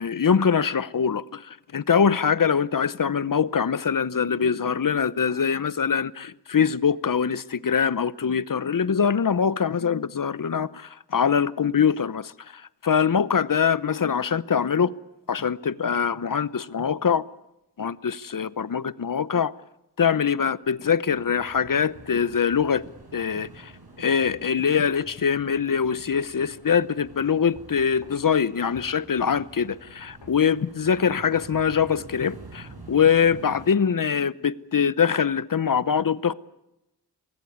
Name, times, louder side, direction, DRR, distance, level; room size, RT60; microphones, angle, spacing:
voice 1, 0.0-14.9 15.3-17.2 17.8-19.5 20.0-22.8 23.1-23.7 24.0-36.3, left 7 dB, 50° left, 0.9 m, -23 dB
sound 1, 21.1-33.7, right 3 dB, 60° right, 8.0 m, -48 dB
sound 2, 21.4-22.2 23.2-23.4 24.3-26.2 26.5-26.7 27.6-28.4 28.8-28.9 29.6-30.3, left 4 dB, 75° left, 3.6 m, -50 dB
23.5 x 19.5 x 9.4 m
cardioid pair, 55°, 42 cm